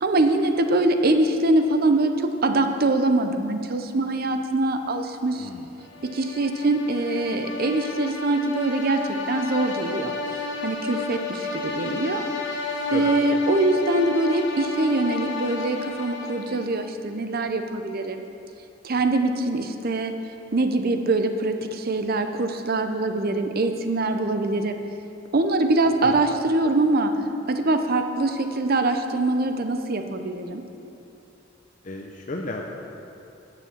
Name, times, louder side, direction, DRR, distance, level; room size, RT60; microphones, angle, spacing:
voice 1, 0.0-5.5 6.1-10.1 10.6-12.2 12.9-18.2 18.8-20.1 20.5-24.8 25.3-27.1 27.5-30.6, right 2 dB, 55° right, 7 dB, 0.7 m, -23 dB
voice 2, 5.4-5.7 12.9-13.0 26.0-26.1 31.8-32.6, left 2 dB, 45° left, 0 dB, 0.7 m, -33 dB
sound 1, 5.9-16.8, left 3 dB, 85° left, 1.2 m, -32 dB
9.7 x 7.1 x 7.4 m, 2.7 s
head